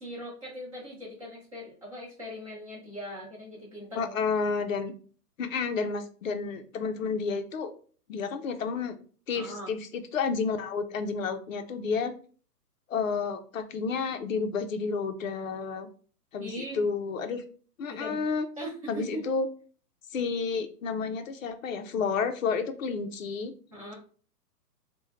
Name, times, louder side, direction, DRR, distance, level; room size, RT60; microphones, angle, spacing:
voice 1, 0.0-4.2 9.3-9.7 16.4-16.8 17.9-18.2 18.6-19.2 23.7-23.9, equal, 20° right, -6 dB, 0.7 m, -40 dB
voice 2, 4.0-4.9 5.4-7.7 8.1-9.0 9.3-12.1 12.9-15.9 16.3-17.4 17.8-18.5 18.9-19.5 20.1-23.5, left 5 dB, 60° left, 7 dB, 0.5 m, -30 dB
2.5 x 2.1 x 2.9 m, 0.41 s
hypercardioid pair, 175°, 47 cm